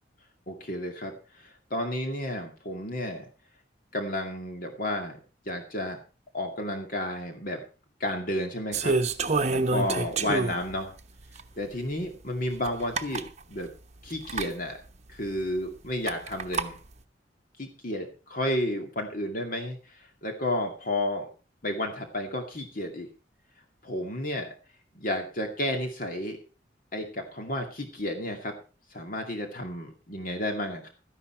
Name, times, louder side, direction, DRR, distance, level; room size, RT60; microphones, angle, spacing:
voice 1, 0.5-3.3 3.9-5.2 5.5-6.0 6.3-7.6 8.0-9.0 9.5-11.0 11.6-13.7 14.0-14.8 15.1-16.8 17.6-21.3 21.6-23.1 23.8-24.5 24.9-26.4 26.9-28.5 28.9-30.9, left 1 dB, 50° left, 4 dB, 2.3 m, -32 dB
sound 1, 8.7-10.7 11.4-11.5 12.6-12.7 12.9-13.3 14.2-14.5 16.1-16.7, right 3 dB, 40° right, 1.0 m, -27 dB
13.0 x 11.0 x 4.4 m, 0.34 s
head